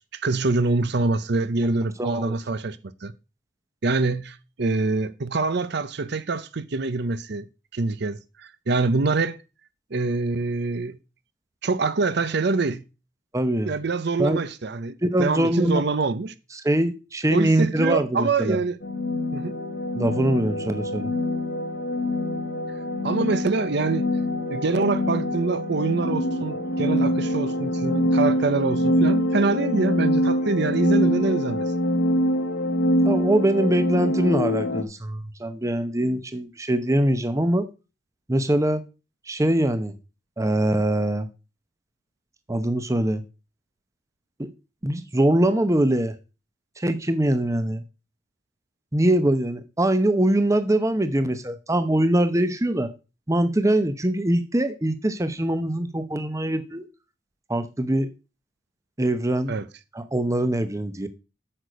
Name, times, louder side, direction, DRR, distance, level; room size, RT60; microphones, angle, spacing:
voice 1, 0.1-3.1 3.8-7.5 7.7-9.4 9.9-11.0 11.6-12.8 13.6-16.3 17.3-18.8 19.3-19.5 23.0-24.0 24.5-31.7 59.5-59.7, right 3 dB, 60° right, 0.7 m, -25 dB
voice 2, 2.0-2.4 13.3-13.7 14.2-14.4 15.0-15.8 16.6-18.6 19.9-21.1 33.0-37.7 38.3-38.8 39.3-39.9 40.4-41.3 42.5-43.2 44.4-44.5 44.8-46.1 46.8-47.8 48.9-52.9 53.3-56.8 57.5-58.1 59.0-59.5 59.9-61.1, right 1 dB, 15° right, 0.8 m, -23 dB
sound 1, 18.8-34.8, left 1 dB, 60° left, 1.1 m, -24 dB
8.8 x 6.5 x 5.1 m
head